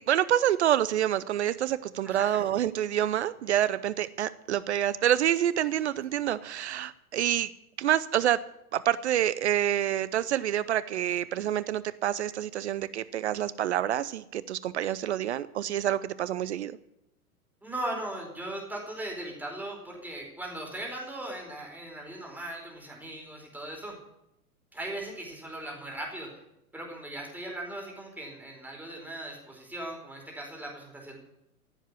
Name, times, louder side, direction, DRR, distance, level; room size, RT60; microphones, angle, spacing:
voice 1, 0.0-7.5 7.8-8.4 8.7-16.8, right 11 dB, 50° right, 17 dB, 0.6 m, -27 dB
voice 2, 2.0-2.4 17.6-23.9 24.7-26.3 26.7-31.2, right 1 dB, 5° right, -1 dB, 4.6 m, -38 dB
16.5 x 7.3 x 9.6 m, 0.83 s
figure-of-eight pair, 100°, 45 cm